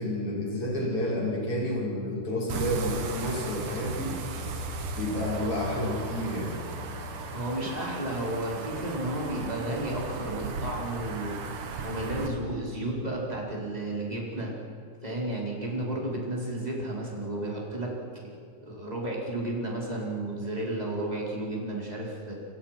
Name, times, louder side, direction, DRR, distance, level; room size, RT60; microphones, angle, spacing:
voice 1, 0.0-4.1 4.9-6.6, left 1 dB, 45° left, -4 dB, 7.2 m, -30 dB
sound 1, 2.5-12.3, right 3 dB, 80° right, 3.3 m, -36 dB
voice 2, 7.3-11.4 11.8-14.5 15.0-17.9 18.6-22.3, right 1 dB, 10° right, -3 dB, 4.8 m, -32 dB
30.0 x 23.5 x 6.0 m, 2.5 s
omnidirectional pair, 3.6 m